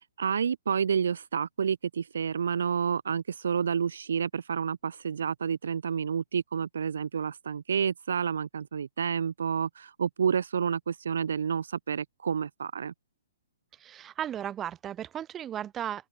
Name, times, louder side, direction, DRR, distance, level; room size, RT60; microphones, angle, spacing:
voice 1, 0.2-12.9, right 7 dB, 70° right, 0.9 m, -29 dB
voice 2, 13.8-16.1, right 10 dB, 20° right, 2.7 m, -35 dB
open air
hypercardioid pair, 130°, 0 cm